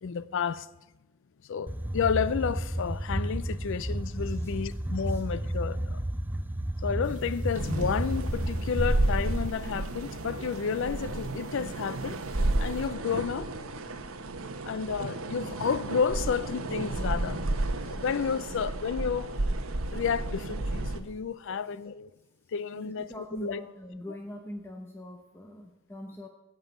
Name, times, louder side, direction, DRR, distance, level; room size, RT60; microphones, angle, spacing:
voice 1, 0.0-0.7 1.5-6.0 6.8-13.6 14.7-19.3 19.9-22.1 22.5-23.6 24.1-24.2, left 6 dB, 60° left, 0.4 m, -31 dB
sound 1, 1.7-9.5, right 1 dB, 10° right, 0.4 m, -32 dB
sound 2, 7.0-12.9, right 1 dB, 35° right, 2.6 m, -44 dB
sound 3, 7.5-21.0, right 2 dB, 75° right, 1.0 m, -32 dB
voice 2, 22.7-26.3, equal, 10° left, 0.8 m, -42 dB
16.0 x 5.5 x 8.1 m
head